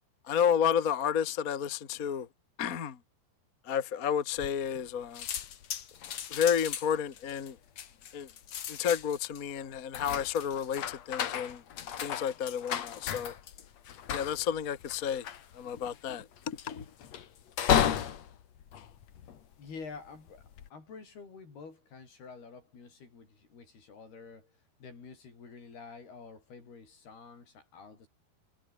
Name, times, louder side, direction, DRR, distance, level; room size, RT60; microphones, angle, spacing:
voice 1, 0.2-2.3 2.6-3.0 3.6-5.2 6.3-7.6 8.1-8.3 8.7-11.6 12.0-13.3 14.1-15.2 15.5-16.8, left 8 dB, 90° left, 0.7 m, -31 dB
sound 1, 4.4-4.9 5.1-19.7 20.3-20.7, left 9 dB, 50° left, 2.3 m, -35 dB
voice 2, 19.6-24.5 24.8-28.1, left 5 dB, 65° left, 8.6 m, -48 dB
omnidirectional pair, 4.8 m